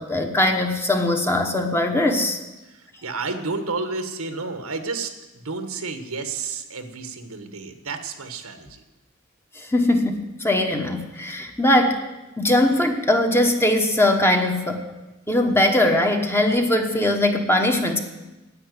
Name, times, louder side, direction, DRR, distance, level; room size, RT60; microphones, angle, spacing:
voice 1, 0.0-2.4 9.6-12.0 12.4-14.8 15.3-18.0, left 1 dB, 10° left, 4 dB, 1.1 m, -20 dB
voice 2, 2.6-8.8, right 4 dB, 85° right, 8 dB, 1.3 m, -31 dB
10.0 x 8.6 x 9.6 m, 1.1 s
head